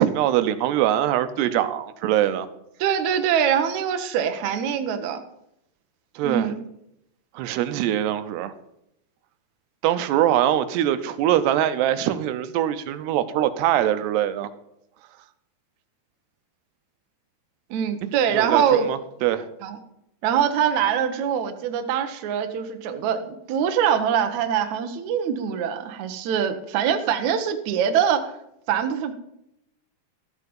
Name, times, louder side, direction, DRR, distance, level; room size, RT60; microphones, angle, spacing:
voice 1, 0.0-2.5 6.2-6.5 7.3-8.5 9.8-14.5 18.3-19.5, right 12 dB, 90° right, 11 dB, 2.9 m, -23 dB
voice 2, 2.8-5.2 6.2-6.5 17.7-18.9 19.6-19.8 20.2-28.3 28.7-29.1, right 8 dB, 70° right, 7 dB, 1.8 m, -23 dB
14.0 x 8.3 x 5.4 m, 0.79 s
omnidirectional pair, 4.7 m